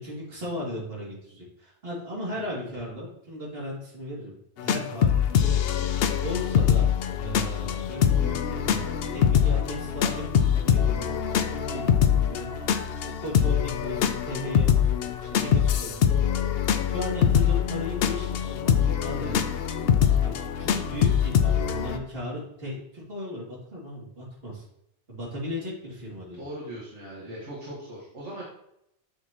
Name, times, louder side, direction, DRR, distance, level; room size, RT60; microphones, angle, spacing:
voice 1, 0.0-4.3 4.6-5.6 6.2-6.9 7.2-16.0 16.9-19.8 20.2-24.6 25.1-26.4, left 1 dB, 55° right, -5 dB, 2.7 m, -36 dB
sound 1, 4.6-22.0, left 8 dB, 65° left, 0.7 m, -24 dB
voice 2, 12.6-13.0 20.4-20.7 26.3-28.4, right 1 dB, 80° right, -5 dB, 1.9 m, -40 dB
6.8 x 6.8 x 2.9 m, 0.77 s
omnidirectional pair, 1.2 m